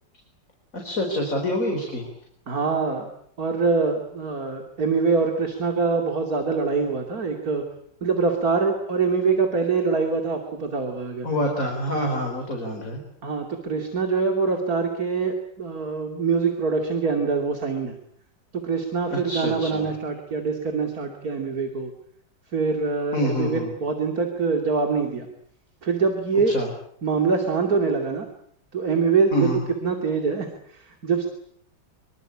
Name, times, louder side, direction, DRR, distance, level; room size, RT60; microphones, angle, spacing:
voice 1, 0.7-2.1 11.2-13.0 19.1-19.9 23.1-23.7 26.5-26.7 29.3-29.6, equal, 45° left, 2 dB, 5.1 m, -26 dB
voice 2, 2.5-7.6 8.0-11.3 13.2-17.9 18.5-21.9 22.5-25.3 25.8-26.5 27.0-28.3 28.7-29.5 29.8-31.3, right 4 dB, 50° right, 4 dB, 3.2 m, -24 dB
25.5 x 24.5 x 8.7 m, 0.68 s
omnidirectional pair, 2.0 m